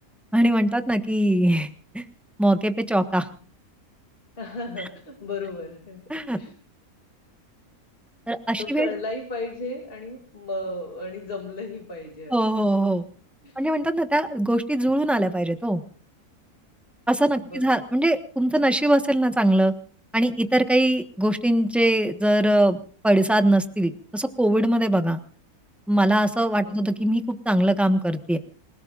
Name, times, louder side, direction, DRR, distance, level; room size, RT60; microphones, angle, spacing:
voice 1, 0.3-1.7 1.9-2.0 2.4-3.3 6.1-6.4 8.3-8.9 12.3-13.0 13.6-15.8 17.1-19.7 20.1-22.8 23.0-25.2 25.9-28.4, right 1 dB, ahead, 7 dB, 1.2 m, -21 dB
voice 2, 4.4-6.0 6.4-6.5 8.6-12.7 13.4-13.7 17.4-17.9 26.6-27.0, left 2 dB, 40° left, 2 dB, 2.9 m, -35 dB
28.0 x 18.0 x 2.6 m, 0.42 s
omnidirectional pair, 1.6 m